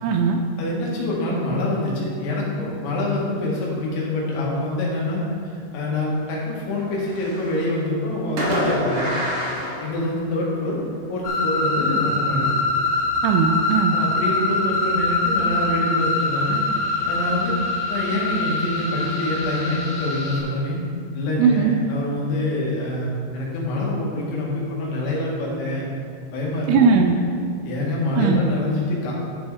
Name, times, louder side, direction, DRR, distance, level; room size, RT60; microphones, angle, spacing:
voice 1, 0.0-0.4 13.2-14.0 21.4-21.8 26.7-27.1 28.1-28.4, right 6 dB, 85° right, 3 dB, 2.4 m, -18 dB
voice 2, 0.6-5.2 5.7-9.2 9.8-10.8 11.1-12.5 13.9-16.6 17.1-17.6 17.9-20.8 21.1-25.9 26.3-26.7 27.6-29.1, left 1 dB, 90° left, -4 dB, 4.3 m, -25 dB
Fireworks, 6.8-7.7 8.4-10.6, equal, 45° right, 2.6 m, -27 dB
sound 1, 11.2-20.4, left 2 dB, 65° left, 3.7 m, -24 dB
11.5 x 6.2 x 4.8 m, 2.3 s
omnidirectional pair, 5.2 m